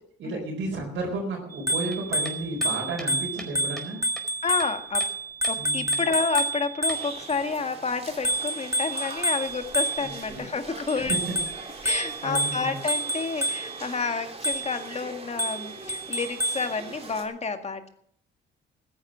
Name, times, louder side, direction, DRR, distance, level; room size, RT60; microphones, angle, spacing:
voice 1, 0.2-4.0 5.6-6.0 10.0-10.4 10.9-11.3 11.7-11.8 12.2-12.8, right 2 dB, 75° right, -2 dB, 4.6 m, -33 dB
Bicycle bell, 1.5-7.4 8.2-10.3 10.9-13.9 14.4-14.9 15.4-16.7, right 1 dB, 15° right, 1.5 m, -29 dB
sound 1, 1.9-3.9 4.2-5.2 5.4-5.6 5.9-6.1 6.4-7.4, equal, ahead, 4.7 m, -43 dB
voice 2, 4.4-5.1 5.5-11.1 11.8-17.9, left 4 dB, 35° left, 7 dB, 2.0 m, -30 dB
sound 2, 6.9-17.2, right 3 dB, 30° right, 3.1 m, -42 dB
14.0 x 10.5 x 7.5 m, 0.65 s
cardioid pair, 90°, 20 cm